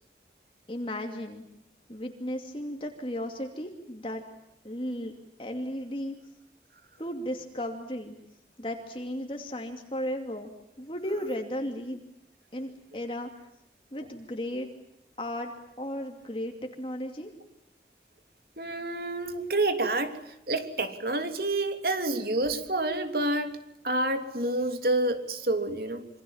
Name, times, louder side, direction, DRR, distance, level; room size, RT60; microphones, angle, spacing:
voice 1, 0.7-1.4 1.9-4.2 4.6-5.1 5.4-6.1 7.0-8.1 8.6-10.5 10.8-12.0 12.5-13.3 13.9-14.7 15.2-17.3, equal, 30° left, 3 dB, 2.7 m, -35 dB
voice 2, 18.6-23.6 23.8-26.1, right 2 dB, 55° right, 7 dB, 3.2 m, -28 dB
27.5 x 26.0 x 7.3 m, 0.83 s
head